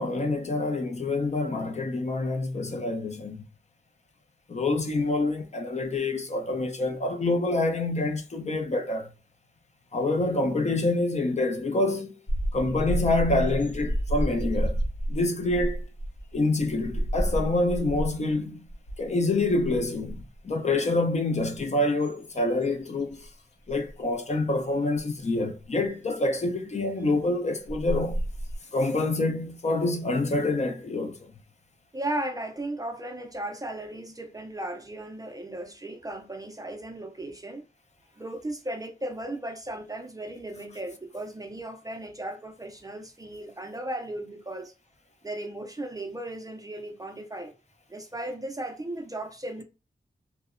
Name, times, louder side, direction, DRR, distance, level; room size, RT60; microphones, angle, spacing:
voice 1, 0.0-3.4 4.5-9.1 9.9-12.1 12.5-14.8 15.1-15.9 16.3-18.6 19.0-23.3 23.7-28.2 28.7-31.3, left 2 dB, 40° left, 0.4 m, -27 dB
sound 1, 12.3-18.3 18.7-19.1 19.4-20.4 21.0-23.3 23.7-23.9 25.0-25.1 27.2-27.3 27.7-28.6, right 1 dB, 80° left, 0.6 m, -31 dB
voice 2, 31.9-37.6 38.2-44.7 45.2-47.6 47.9-49.6, right 1 dB, 20° right, 0.4 m, -36 dB
2.7 x 2.1 x 2.4 m
wide cardioid pair, 100°, 18 cm